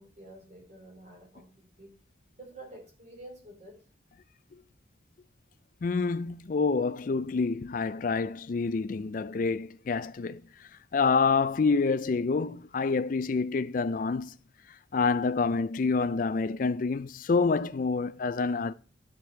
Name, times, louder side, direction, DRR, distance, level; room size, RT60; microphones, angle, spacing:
voice 1, 0.0-1.9 2.3-3.8, right 1 dB, 35° right, 3.1 m, -49 dB
voice 2, 5.8-10.4 10.9-14.3 14.9-18.7, left 4 dB, 45° left, 0.4 m, -27 dB
11.0 x 5.2 x 4.4 m
head